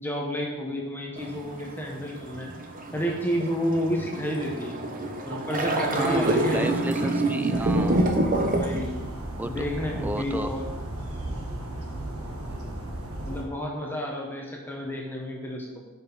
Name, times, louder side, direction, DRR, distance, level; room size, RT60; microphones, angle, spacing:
voice 1, 0.0-2.5 2.9-4.8 5.2-6.7 8.5-9.0 9.4-10.7 13.2-15.8, equal, 10° left, -1 dB, 1.1 m, -30 dB
sound 1, 1.2-8.8, right 1 dB, 40° right, 0.8 m, -27 dB
voice 2, 6.0-8.0 9.4-9.6 9.9-10.5, right 1 dB, 10° right, 10 dB, 0.3 m, -31 dB
sound 2, 7.5-13.4, right 1 dB, 90° right, 1.4 m, -35 dB
8.9 x 5.7 x 4.0 m, 1.2 s
head